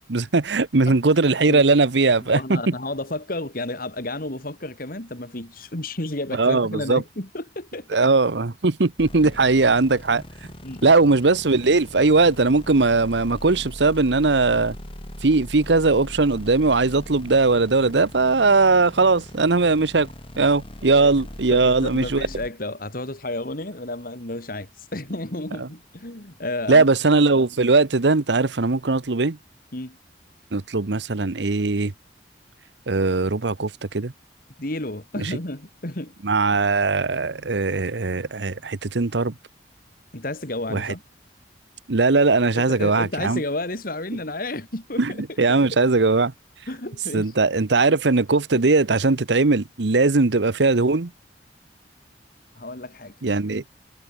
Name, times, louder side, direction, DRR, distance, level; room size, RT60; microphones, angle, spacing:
voice 1, 0.0-2.7 6.4-7.0 7.9-10.2 10.8-14.8 15.2-20.1 20.4-22.3 26.7-29.4 30.5-31.9 32.9-34.1 35.2-35.4 36.2-39.3 40.7-40.9 41.9-43.4 45.0-45.1 45.4-46.3 47.1-51.1 53.2-53.6, right 3 dB, 75° right, 0.9 m, -19 dB
voice 2, 2.2-8.1 9.2-9.3 10.6-10.9 21.0-21.1 21.5-26.9 29.7-30.0 34.6-36.1 40.1-41.0 42.5-45.0 45.3-45.4 46.7-47.3 48.5-48.6 52.5-53.1, left 2 dB, 50° left, 3.0 m, -32 dB
sound 1, 9.0-22.5, equal, 30° left, 4.0 m, -40 dB
head